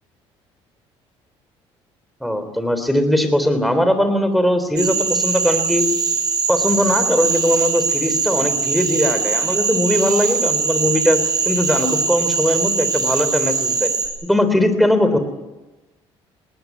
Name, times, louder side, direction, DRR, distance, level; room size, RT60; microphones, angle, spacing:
voice 1, 2.2-5.8 6.5-11.2 11.5-13.9 14.2-15.2, left 1 dB, ahead, 8 dB, 3.6 m, -19 dB
Cricket / Frog, 4.8-14.1, right 5 dB, 40° right, 5.4 m, -21 dB
20.0 x 19.0 x 9.7 m, 1.1 s
cardioid pair, 125°, 11 cm